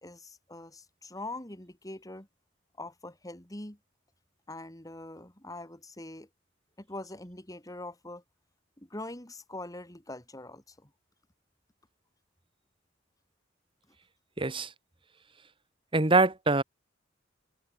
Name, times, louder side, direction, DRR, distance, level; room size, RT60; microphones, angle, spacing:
voice 1, 0.0-2.3 2.8-3.8 4.5-6.3 6.8-8.2 8.8-10.9, left 2 dB, 20° left, 3.1 m, -43 dB
voice 2, 14.4-14.7 15.9-16.6, right 3 dB, 25° right, 1.4 m, -24 dB
head